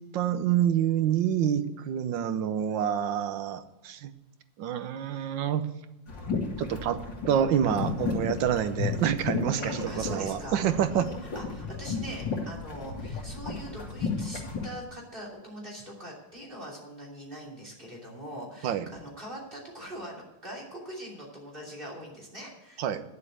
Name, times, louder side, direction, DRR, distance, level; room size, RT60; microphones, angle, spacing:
voice 1, 0.0-4.1 4.6-5.7 6.6-11.1 18.6-18.8 22.8-23.0, right 9 dB, 80° right, 11 dB, 1.5 m, -27 dB
sound 1, 6.1-14.7, left 4 dB, 70° left, 3.0 m, -34 dB
voice 2, 9.5-22.8, equal, 25° right, -1 dB, 3.2 m, -42 dB
9.9 x 7.4 x 8.0 m, 1.0 s
omnidirectional pair, 2.1 m